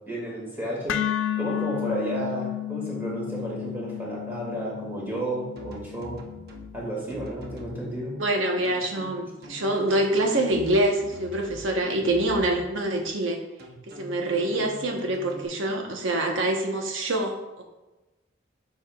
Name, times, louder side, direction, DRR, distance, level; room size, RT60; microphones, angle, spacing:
voice 1, 0.1-1.0 1.4-6.2 6.7-8.1, right 1 dB, 10° right, -5 dB, 2.0 m, -32 dB
sound 1, 0.9-9.0, left 12 dB, 70° left, 0.3 m, -33 dB
sound 2, 5.6-6.7 7.1-7.8 8.6-11.6 12.0-12.7 13.6-15.4, right 1 dB, 55° right, 0.9 m, -44 dB
voice 2, 8.2-13.4 14.0-17.6, right 1 dB, 80° right, 2 dB, 1.0 m, -25 dB
7.2 x 5.7 x 2.4 m, 1.0 s
head